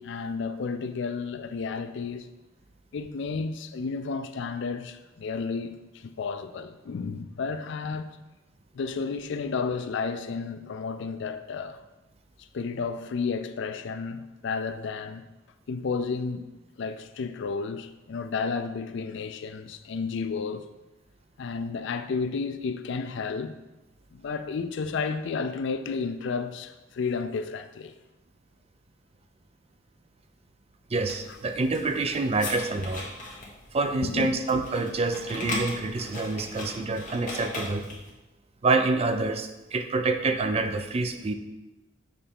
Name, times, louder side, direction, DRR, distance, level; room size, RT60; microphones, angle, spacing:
voice 1, 0.0-2.3 2.9-8.2 8.7-11.8 12.4-15.3 15.7-16.5 16.8-20.7 21.4-23.6 24.1-27.9 34.0-34.3, left 5 dB, 65° left, 0.4 m, -32 dB
sound 1, 30.9-38.1, left 2 dB, 40° left, 1.4 m, -38 dB
voice 2, 30.9-33.0 33.7-37.9 38.6-41.3, right 3 dB, 30° right, 0.4 m, -27 dB
6.6 x 3.3 x 5.3 m
head